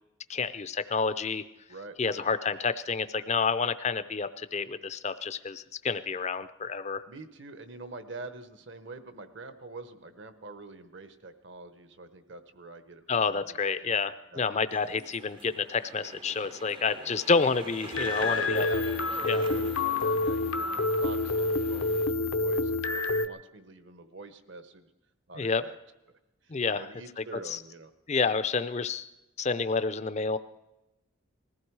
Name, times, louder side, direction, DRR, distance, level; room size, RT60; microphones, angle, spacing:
voice 1, 0.3-1.4 2.0-7.0 13.1-18.7 19.2-19.4 25.3-25.6 26.5-26.9 27.2-27.6 28.1-29.1 29.4-30.4, left 4 dB, 30° left, 12 dB, 0.5 m, -29 dB
voice 2, 1.7-2.3 7.1-14.0 14.3-14.4 18.2-24.9 25.3-25.8 26.4-27.9, right 2 dB, 60° right, 10 dB, 1.1 m, -45 dB
sound 1, 14.7-22.1, right 3 dB, 25° right, 0.6 m, -46 dB
sound 2, 17.9-23.3, left 3 dB, 75° left, 0.8 m, -28 dB
20.5 x 15.0 x 4.7 m, 0.97 s
head